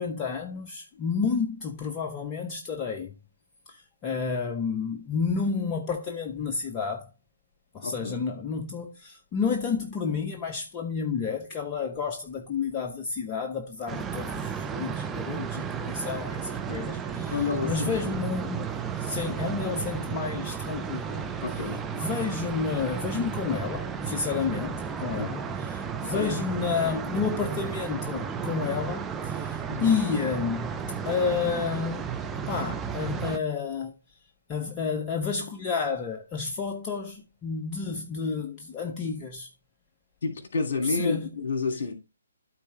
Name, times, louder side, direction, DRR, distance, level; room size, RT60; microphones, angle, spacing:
voice 1, 0.0-3.1 3.7-7.1 7.7-21.3 21.6-30.8 31.0-32.1 32.3-33.9 34.5-39.5 40.8-41.3, left 5 dB, 20° left, 0.8 m, -30 dB
voice 2, 7.8-8.2 17.3-17.9 21.4-21.8 25.2-25.3 26.0-26.4 29.7-30.0 40.2-41.9, left 4 dB, 50° left, 2.7 m, -29 dB
sound 1, 13.9-33.4, right 7 dB, 10° right, 0.6 m, -33 dB
12.5 x 4.3 x 3.3 m
figure-of-eight pair, 135°, 0 cm